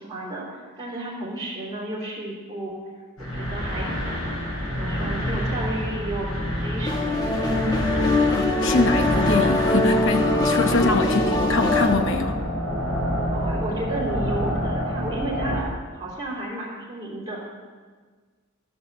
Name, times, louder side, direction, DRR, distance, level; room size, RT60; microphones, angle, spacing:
voice 1, 0.0-2.8 3.2-4.3 4.7-7.7 10.8-11.0 13.3-17.4, right 1 dB, 20° right, -7 dB, 2.9 m, -33 dB
sound 1, 3.2-15.6, equal, 80° left, 4.1 m, -27 dB
sound 2, 6.8-11.9, left 2 dB, 20° left, 1.2 m, -22 dB
voice 2, 8.3-12.4, left 3 dB, 60° left, 7 dB, 0.9 m, -24 dB
13.5 x 5.6 x 7.1 m, 1.5 s
head